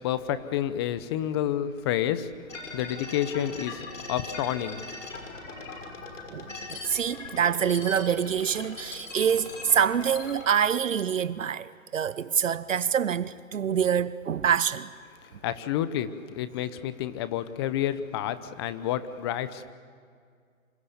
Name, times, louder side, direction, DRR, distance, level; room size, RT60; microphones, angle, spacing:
voice 1, 0.0-2.3 2.7-3.8 4.1-4.8 15.4-19.7, left 11 dB, 20° left, 0.8 m, -29 dB
sound 1, 2.5-10.5, left 3 dB, 65° left, 5.8 m, -40 dB
voice 2, 6.3-14.9, right 8 dB, 65° right, 1.0 m, -26 dB
28.0 x 27.0 x 7.1 m
hypercardioid pair, 145°, 41 cm